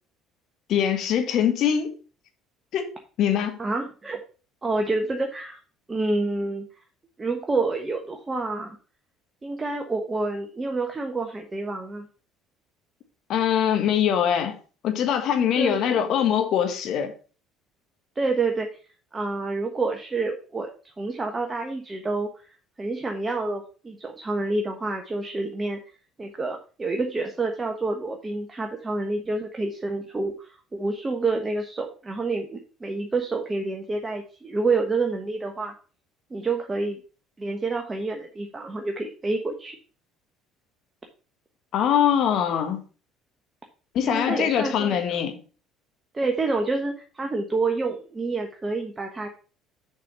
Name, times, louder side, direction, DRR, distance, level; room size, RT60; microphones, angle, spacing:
voice 1, 0.7-1.9 2.7-2.9 3.2-3.6 13.3-14.6 14.8-17.1 41.7-42.8 43.9-45.4, left 9 dB, 55° left, 1.5 m, -23 dB
voice 2, 3.6-4.2 4.6-5.6 5.9-6.7 7.2-8.8 9.4-12.1 15.6-15.9 18.1-18.7 19.1-20.7 21.0-22.3 22.8-25.8 26.2-35.7 36.3-37.0 37.4-39.8 44.0-45.0 46.1-49.3, right 3 dB, 25° right, 1.2 m, -28 dB
7.4 x 5.3 x 4.3 m
figure-of-eight pair, 60°, 0 cm